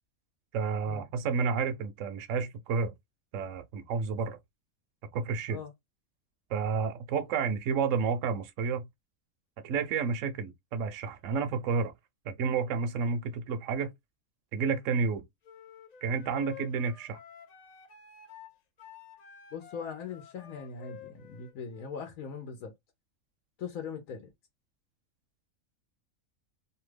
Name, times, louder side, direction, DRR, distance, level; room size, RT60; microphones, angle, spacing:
voice 1, 0.5-2.9 3.3-4.4 5.1-5.6 6.5-8.9 9.6-11.9 12.2-13.9 14.5-15.2 16.0-17.2, right 5 dB, 70° right, 0.9 m, -30 dB
sound 1, 15.4-21.9, left 9 dB, 55° left, 0.4 m, -50 dB
voice 2, 19.5-22.7 23.6-24.3, left 6 dB, 75° left, 1.1 m, -40 dB
2.7 x 2.3 x 3.1 m
omnidirectional pair, 1.5 m